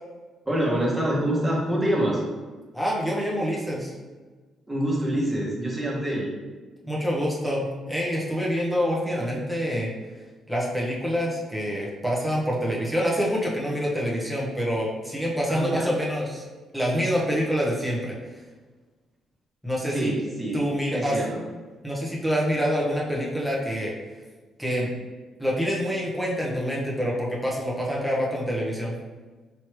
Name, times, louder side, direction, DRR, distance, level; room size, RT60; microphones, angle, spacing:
voice 1, 0.5-2.2 4.7-6.3 15.5-15.9 19.9-21.4, right 1 dB, 15° right, -4 dB, 1.3 m, -26 dB
voice 2, 2.7-3.9 6.8-9.9 10.5-16.4 16.7-18.2 19.6-20.1 20.5-21.2 21.8-23.9 24.6-24.9 25.4-28.9, equal, ahead, -4 dB, 1.0 m, -26 dB
4.5 x 3.1 x 3.2 m, 1.3 s
cardioid pair, 90°, 0 cm